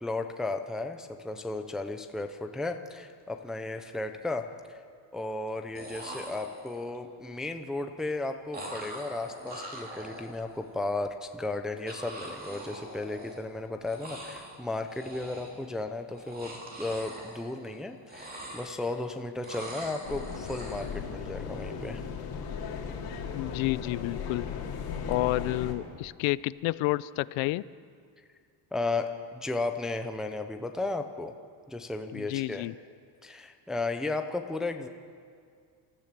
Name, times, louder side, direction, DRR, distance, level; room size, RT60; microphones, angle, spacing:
voice 1, 0.0-4.8 5.1-16.5 16.8-22.0 28.7-31.3 31.7-32.7 33.2-34.9, left 2 dB, ahead, 6 dB, 0.4 m, -34 dB
sound 1, 3.3-3.5 3.8-4.4 5.5-5.6 5.7-7.0 8.5-10.7 11.9-13.6 13.8-14.6 14.9-15.7 16.1-17.8 18.0-19.0 19.4-21.0, right 1 dB, 20° right, 2.7 m, -43 dB
sound 2, 20.0-25.7, left 6 dB, 50° left, 2.5 m, -37 dB
voice 2, 23.3-24.4 25.1-27.6 32.1-32.8, left 19 dB, 70° left, 18 dB, 0.6 m, -30 dB
26.5 x 14.0 x 7.4 m, 2.2 s
cardioid pair, 175°, 48 cm